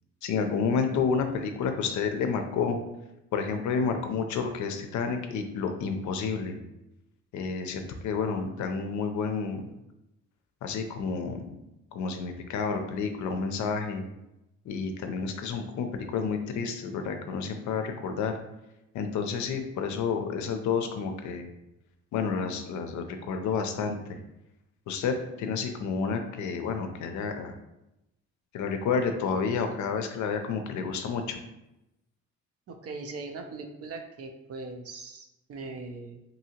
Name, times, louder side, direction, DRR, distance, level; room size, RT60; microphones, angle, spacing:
voice 1, 0.2-2.8 3.3-6.6 7.3-9.6 10.6-11.5 11.9-14.0 14.7-18.3 18.9-21.5 22.1-24.0 24.9-27.5 28.5-31.4, left 5 dB, 70° left, 6 dB, 0.5 m, -30 dB
voice 2, 32.7-36.2, right 3 dB, 50° right, 4 dB, 0.5 m, -40 dB
2.7 x 2.7 x 2.8 m, 0.90 s
cardioid pair, 90°, 30 cm